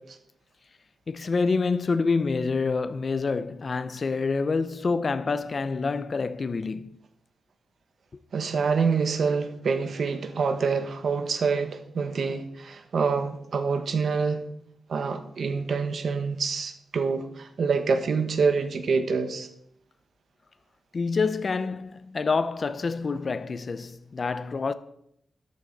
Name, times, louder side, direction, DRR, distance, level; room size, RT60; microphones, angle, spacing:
voice 1, 1.1-7.0 20.9-24.7, left 4 dB, 40° left, 0.7 m, -27 dB
voice 2, 8.3-14.5 14.9-19.5, right 5 dB, 60° right, 1.3 m, -26 dB
13.5 x 12.5 x 4.1 m
wide cardioid pair, 130°, 0 cm